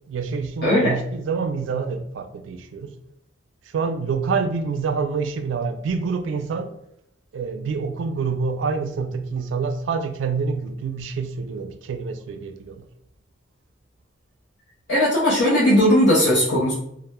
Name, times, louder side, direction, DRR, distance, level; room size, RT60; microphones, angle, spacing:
voice 1, 0.1-2.9 3.7-6.7 7.3-12.9, right 5 dB, 85° right, 0.3 m, -27 dB
voice 2, 0.6-0.9 14.9-16.7, equal, 70° left, 0.5 m, -18 dB
2.1 x 2.0 x 2.9 m
head